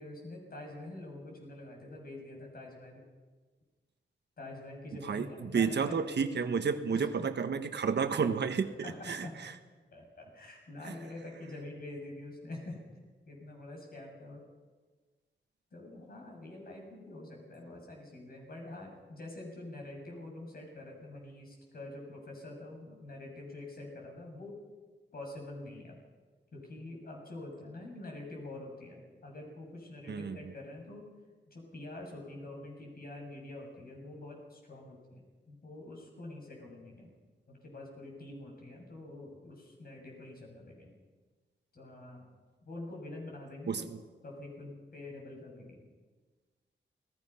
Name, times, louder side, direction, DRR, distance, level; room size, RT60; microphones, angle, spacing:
voice 1, 0.0-3.0 4.4-6.0 6.9-7.3 8.8-9.4 9.9-12.8 13.3-14.4 15.7-24.6 25.1-26.0 26.5-31.0 31.5-37.2 37.5-40.9 41.7-42.3 42.7-43.9 44.2-45.9, left 2 dB, 50° left, 0 dB, 6.9 m, -46 dB
voice 2, 5.1-9.3 30.1-30.4 43.7-43.8, right 6 dB, 65° right, 8 dB, 1.3 m, -31 dB
28.5 x 19.5 x 5.7 m, 1.4 s
wide cardioid pair, 180°, 19 cm